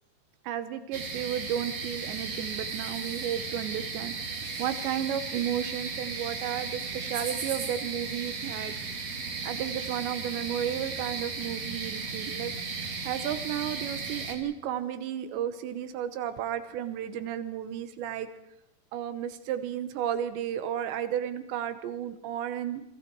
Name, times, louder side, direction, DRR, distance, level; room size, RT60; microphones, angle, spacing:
voice 1, 0.4-8.8 9.0-9.2 9.4-12.5 13.0-18.3 18.9-22.8, right 10 dB, 85° right, 11 dB, 3.4 m, -33 dB
sound 1, 0.9-14.3, right 4 dB, 40° right, 3.4 m, -35 dB
28.0 x 23.0 x 4.7 m, 0.87 s
omnidirectional pair, 5.1 m